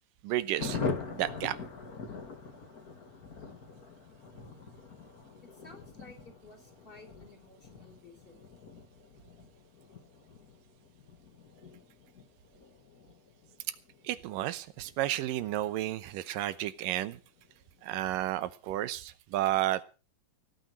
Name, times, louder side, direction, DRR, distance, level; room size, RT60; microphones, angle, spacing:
voice 1, 0.2-0.8 1.1-1.6 14.0-17.2 17.8-19.8, right 14 dB, 90° right, 2.6 m, -32 dB
Thunder, 0.6-16.7 17.0-17.1 17.4-17.5 17.8-18.2, left 4 dB, 35° left, 1.8 m, -43 dB
voice 2, 5.4-8.4, left 3 dB, 15° left, 3.9 m, -54 dB
17.0 x 9.2 x 6.3 m
omnidirectional pair, 3.8 m